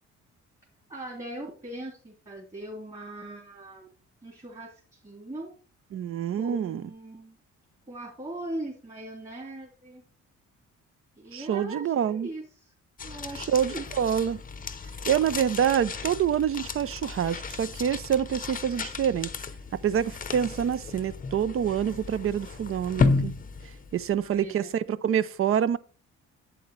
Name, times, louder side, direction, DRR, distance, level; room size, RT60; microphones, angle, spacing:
voice 1, 0.9-3.9 4.2-5.5 6.3-7.4 7.9-10.0 11.2-12.7 13.0-13.9 24.1-24.7, right 1 dB, 25° right, 3.1 m, -40 dB
voice 2, 5.9-6.8 11.3-12.3 13.5-14.4 15.1-19.3 19.8-23.3 23.9-25.8, right 9 dB, 45° right, 0.5 m, -26 dB
sound 1, 13.0-24.3, left 4 dB, 30° left, 0.7 m, -33 dB
7.8 x 7.8 x 3.2 m
cardioid pair, 90°, 30 cm